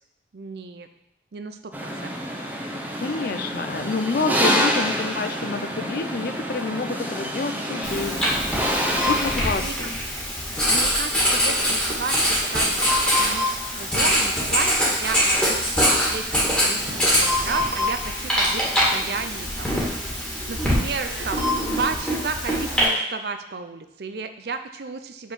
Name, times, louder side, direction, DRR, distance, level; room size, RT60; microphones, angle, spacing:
voice 1, 0.3-0.9 1.3-2.2 4.5-4.6 9.6-9.8 10.7-12.8 13.2-18.6 18.9-19.8 20.5-25.3, right 4 dB, 60° right, 9 dB, 0.5 m, -33 dB
sound 1, 1.7-9.5, equal, 10° right, 0.8 m, -27 dB
voice 2, 3.0-8.3 8.9-9.9, left 4 dB, 55° left, 9 dB, 0.5 m, -28 dB
Writing, 7.8-22.8, equal, 5° left, 1.8 m, -23 dB
sound 2, 9.0-9.1 12.1-13.5 14.9-15.0 16.6-17.9 21.0-21.5, left 3 dB, 85° right, 1.3 m, -27 dB
5.5 x 4.5 x 6.1 m, 0.83 s
head